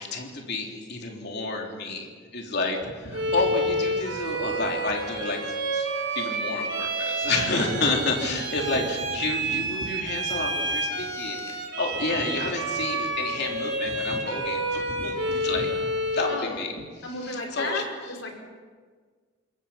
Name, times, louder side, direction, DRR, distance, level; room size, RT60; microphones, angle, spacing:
voice 1, 0.0-5.4 5.7-5.9 6.2-15.8 16.1-16.7 17.2-17.8, left 3 dB, 55° left, 1 dB, 3.5 m, -30 dB
Bowed string instrument, 3.1-16.5, right 1 dB, 65° right, 5.3 m, -29 dB
voice 2, 16.3-16.6 17.0-18.3, left 2 dB, 80° left, 2 dB, 5.2 m, -33 dB
27.0 x 22.0 x 5.9 m, 1.5 s
head